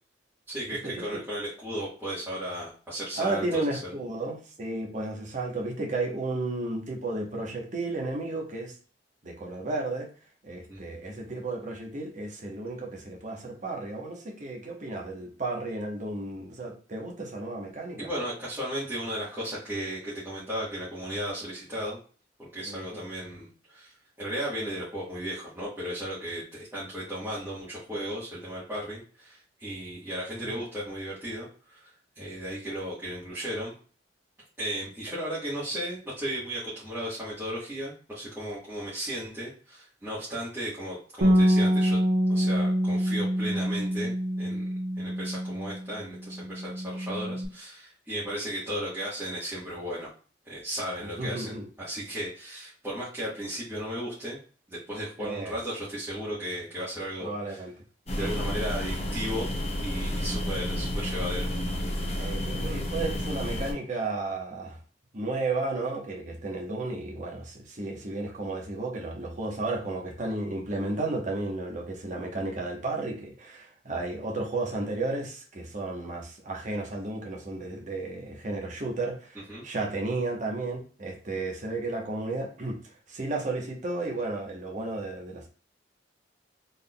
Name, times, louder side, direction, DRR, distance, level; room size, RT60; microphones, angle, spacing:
voice 1, 0.5-3.9 10.7-10.8 18.0-22.0 22.4-33.7 34.6-42.0 42.3-44.7 45.0-50.1 50.4-54.4 54.7-57.6 58.1-59.5 59.8-61.5 79.5-79.6, equal, 10° right, -11 dB, 1.4 m, -35 dB
voice 2, 3.2-8.7 9.2-10.1 10.4-18.1 22.6-23.0 30.4-30.6 51.2-51.7 55.2-55.5 57.2-57.7 58.2-58.5 62.2-64.8 65.1-79.4 79.6-82.8 83.1-85.5, right 2 dB, 40° right, 0 dB, 1.0 m, -33 dB
Bass guitar, 41.2-45.9 46.2-47.5, equal, 85° right, 1.0 m, -26 dB
sound 1, 58.1-63.7, left 1 dB, 35° left, 0.8 m, -31 dB
4.0 x 3.6 x 2.3 m, 0.40 s
head